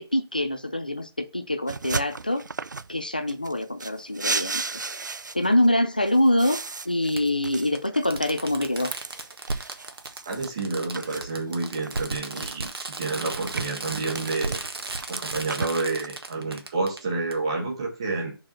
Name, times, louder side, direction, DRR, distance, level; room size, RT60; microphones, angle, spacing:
voice 1, 0.0-2.4 2.9-4.8 5.3-6.6 6.9-8.9, left 1 dB, 20° left, 0.4 m, -24 dB
sound 1, 1.7-2.9 3.3-5.7 6.0-10.5 10.9-12.8 13.2-16.1, right 4 dB, 50° right, 0.4 m, -35 dB
Fireworks, 3.8-3.9 5.4-5.5 7.1-7.2 7.7-7.8 8.1-17.0 17.3-17.4, right 3 dB, 70° right, 1.5 m, -34 dB
voice 2, 10.3-14.6 15.1-18.4, right 3 dB, 15° right, 1.1 m, -29 dB
4.9 x 4.6 x 5.7 m
hypercardioid pair, 180°, 13 cm